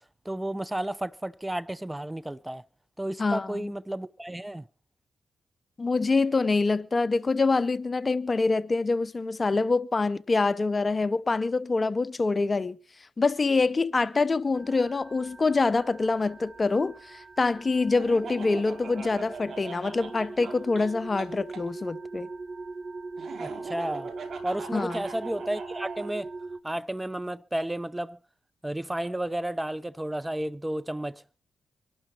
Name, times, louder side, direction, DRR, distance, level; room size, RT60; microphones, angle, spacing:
voice 1, 0.2-2.6 3.0-4.6 23.4-24.1 24.4-26.3 26.6-28.2 28.6-31.2, right 1 dB, 15° right, 0.7 m, -32 dB
voice 2, 3.2-3.7 5.8-12.8 13.2-22.3 24.7-25.0, left 3 dB, 40° left, 0.8 m, -25 dB
sound 1, 14.5-26.6, right 3 dB, 45° right, 1.3 m, -41 dB
Laughter, 18.0-21.6 23.2-26.1, right 5 dB, 70° right, 3.0 m, -42 dB
25.0 x 12.0 x 3.0 m
supercardioid pair, 50°, 0 cm